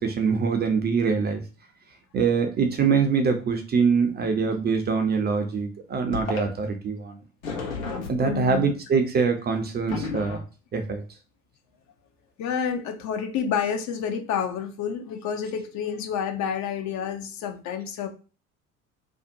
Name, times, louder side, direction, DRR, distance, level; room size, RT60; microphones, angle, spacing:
voice 1, 0.0-1.4 2.1-7.2 8.1-10.4 10.7-11.0, right 5 dB, 25° right, 5 dB, 0.5 m, -24 dB
sound 1, 6.1-6.4 7.4-8.6 9.9-10.4, left 4 dB, 80° left, 0.8 m, -32 dB
voice 2, 8.2-8.7 12.4-18.1, left 7 dB, 45° left, 6 dB, 0.6 m, -29 dB
2.6 x 2.1 x 2.6 m, 0.35 s
figure-of-eight pair, 60°, 40 cm